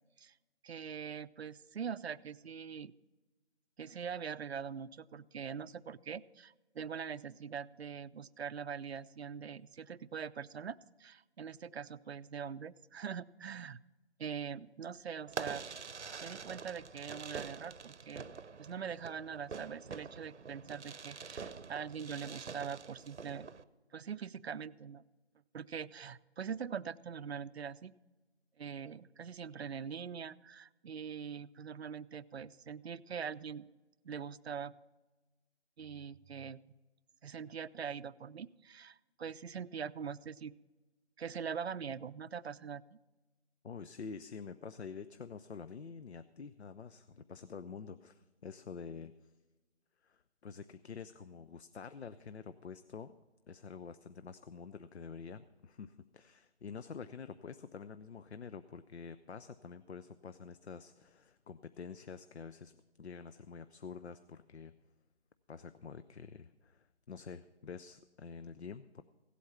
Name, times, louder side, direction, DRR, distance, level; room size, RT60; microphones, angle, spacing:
voice 1, 0.6-2.9 3.8-13.8 14.2-15.6 16.2-18.2 18.6-23.5 23.9-25.0 25.5-27.9 28.6-33.7 34.0-34.7 35.8-36.6 37.2-40.5 41.2-43.0, right 7 dB, 65° right, 16 dB, 0.5 m, -43 dB
Fireworks, 15.3-23.6, right 5 dB, 85° right, 0.8 m, -46 dB
voice 2, 43.6-49.3 50.0-53.1 53.5-64.7 65.5-69.0, left 5 dB, 70° left, 12 dB, 0.7 m, -48 dB
16.5 x 8.3 x 5.7 m, 1.2 s
figure-of-eight pair, 170°, 34 cm